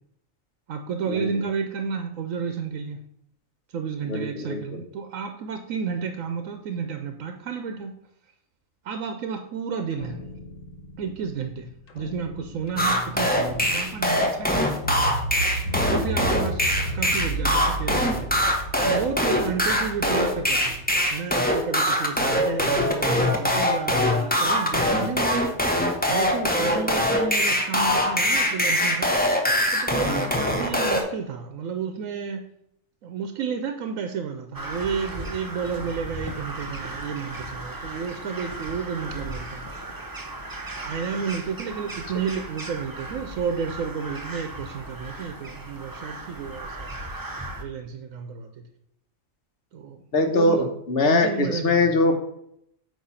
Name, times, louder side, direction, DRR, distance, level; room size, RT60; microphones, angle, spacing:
voice 1, 0.7-3.0 3.7-7.9 8.8-10.2 11.0-11.7 11.9-14.8 15.9-18.3 18.8-20.9 21.1-25.5 26.1-29.1 29.8-32.4 33.0-39.6 40.8-46.9 47.6-48.6 49.7-50.7 51.0-51.8, right 6 dB, 85° right, 6 dB, 1.1 m, -31 dB
voice 2, 4.0-4.6 16.2-16.4 30.4-30.7 50.1-52.2, left 2 dB, 50° left, 5 dB, 1.2 m, -22 dB
sound 1, 9.9-21.2, right 1 dB, 80° left, 1.4 m, -34 dB
sound 2, 12.8-31.0, left 1 dB, 10° left, 0.8 m, -22 dB
Crow, 34.5-47.6, right 1 dB, 20° right, 0.7 m, -36 dB
8.6 x 3.1 x 5.6 m, 0.74 s
omnidirectional pair, 1.3 m